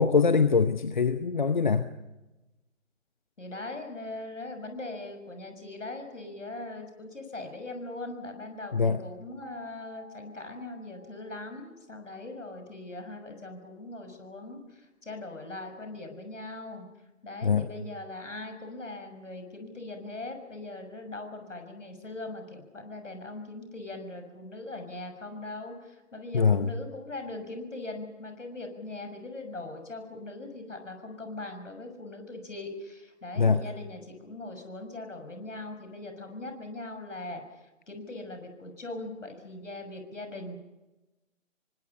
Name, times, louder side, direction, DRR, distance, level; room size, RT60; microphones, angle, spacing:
voice 1, 0.0-1.9 8.7-9.0 17.4-17.7 26.3-26.7 33.4-33.6, left 5 dB, 35° left, 11 dB, 0.9 m, -23 dB
voice 2, 3.4-16.9 17.2-37.4 37.9-40.6, left 2 dB, 65° left, 6 dB, 6.4 m, -40 dB
sound 1, 9.4-12.4, right 1 dB, ahead, 1.7 m, -52 dB
27.5 x 24.5 x 5.6 m, 1.0 s
figure-of-eight pair, 150°, 40 cm